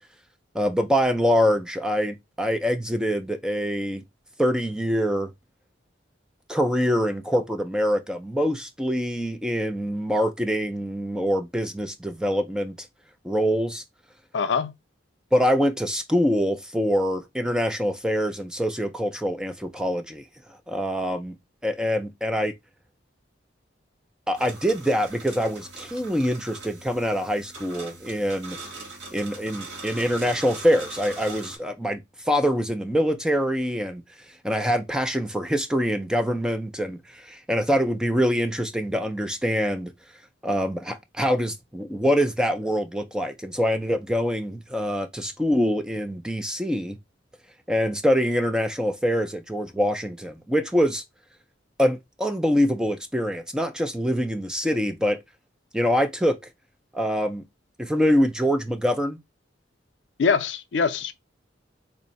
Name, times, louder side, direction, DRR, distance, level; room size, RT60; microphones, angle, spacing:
voice 1, 0.5-4.0 4.4-5.3 6.5-12.9 13.2-13.8 15.3-21.4 21.6-22.5 24.3-28.6 29.1-32.0 32.3-34.0 34.4-39.9 40.4-47.0 47.7-51.0 51.8-55.2 55.7-56.4 56.9-57.4 57.8-59.2, equal, 5° right, 0.3 m, -24 dB
voice 2, 14.3-14.7 60.2-61.1, left 5 dB, 65° left, 0.4 m, -23 dB
sound 1, 24.3-31.6, right 3 dB, 65° right, 1.2 m, -41 dB
3.5 x 2.0 x 4.0 m
head